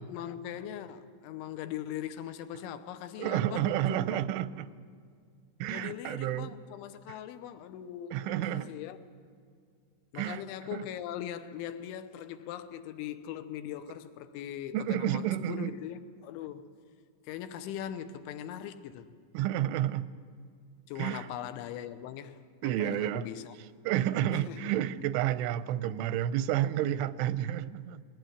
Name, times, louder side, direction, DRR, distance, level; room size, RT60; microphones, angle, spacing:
voice 1, 0.0-4.2 5.7-9.0 10.1-16.7 17.2-19.1 20.9-22.4 22.8-23.5 24.3-24.7, left 10 dB, 85° left, 3.3 m, -40 dB
voice 2, 3.2-4.7 5.6-6.6 8.1-8.7 10.1-10.4 10.7-10.8 14.7-15.8 19.3-20.1 21.0-21.3 22.6-23.3 23.8-28.0, right 12 dB, 85° right, 3.1 m, -30 dB
20.5 x 18.5 x 9.5 m
omnidirectional pair, 5.4 m